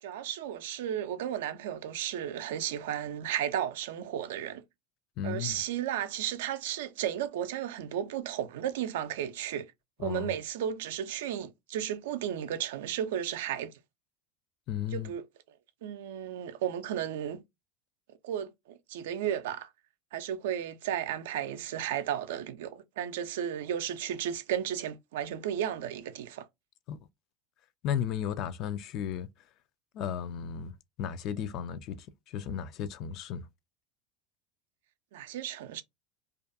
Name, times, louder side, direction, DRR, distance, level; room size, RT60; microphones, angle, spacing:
voice 1, 0.0-4.6 5.2-9.7 10.0-13.7 14.9-15.2 15.8-17.4 18.2-19.7 20.1-26.5 35.1-35.8, right 10 dB, 75° right, 0.4 m, -34 dB
voice 2, 5.2-5.6 10.0-10.3 14.7-15.1 26.9-27.0 27.8-29.3 29.9-30.7 31.0-33.4, left 9 dB, 55° left, 0.4 m, -34 dB
2.4 x 2.2 x 2.5 m
hypercardioid pair, 85°, 0 cm